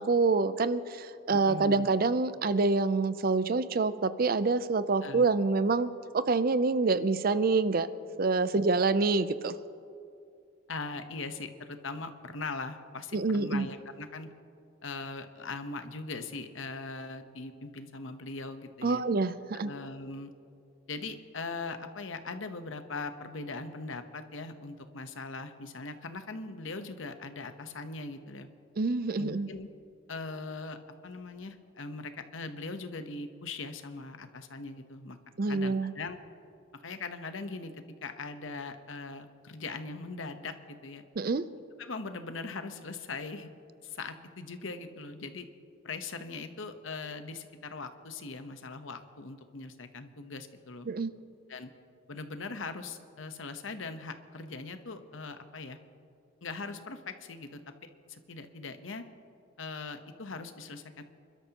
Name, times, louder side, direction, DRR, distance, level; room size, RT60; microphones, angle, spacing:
voice 1, 0.0-7.9 8.2-9.6 13.1-13.7 18.8-19.7 28.8-29.5 35.4-35.9 41.2-41.4 50.9-51.1, right 3 dB, 45° right, 14 dB, 0.5 m, -27 dB
voice 2, 1.3-1.9 5.0-5.3 10.7-14.3 14.8-19.0 19.6-20.3 20.9-28.5 29.2-29.7 30.1-35.2 35.5-36.2 36.7-41.0 41.8-43.5 43.8-45.5 45.8-50.9 51.5-51.7 52.1-55.8 56.4-59.0 59.6-61.0, left 3 dB, 80° left, 8 dB, 1.0 m, -40 dB
27.5 x 12.5 x 2.9 m, 2.5 s
head